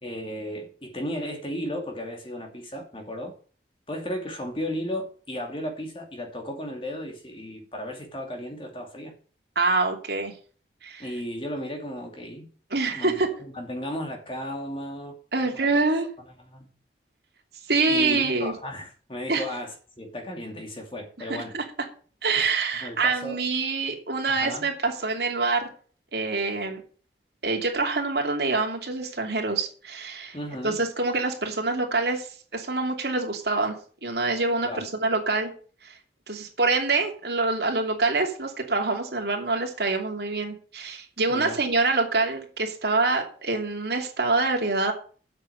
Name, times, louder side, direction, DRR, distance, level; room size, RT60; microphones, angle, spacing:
voice 1, 0.0-3.3 3.9-9.1 11.0-12.5 12.9-15.7 16.2-16.7 17.9-21.5 22.4-23.4 24.3-24.7 30.3-30.8 34.6-34.9 41.3-41.7, equal, 30° left, 2.5 m, -35 dB
voice 2, 9.5-10.3 10.8-11.0 12.7-13.3 15.3-16.1 17.7-18.5 19.3-19.4 21.3-21.6 22.2-25.7 26.1-26.8 27.4-30.4 30.6-32.3 32.5-33.7 34.0-35.5 35.8-35.9 36.3-44.9, right 3 dB, 70° right, 2.8 m, -25 dB
8.1 x 6.9 x 8.0 m
head